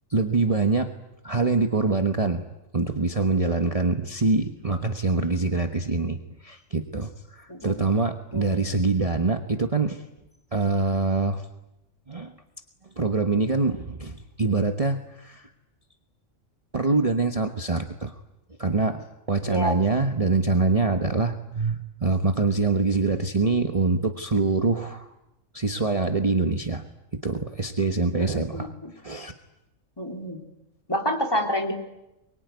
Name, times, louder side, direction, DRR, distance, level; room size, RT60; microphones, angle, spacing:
voice 1, 0.1-0.9 1.2-2.4 2.7-10.0 10.5-11.5 12.1-12.3 13.0-15.5 16.7-18.1 18.6-25.1 25.5-26.8 27.1-28.7 29.0-29.3, right 3 dB, 30° right, 6 dB, 1.3 m, -24 dB
voice 2, 28.2-28.9 30.0-30.4 30.9-31.7, equal, 20° left, 4 dB, 3.5 m, -28 dB
24.0 x 23.5 x 9.5 m, 0.90 s
omnidirectional pair, 1.3 m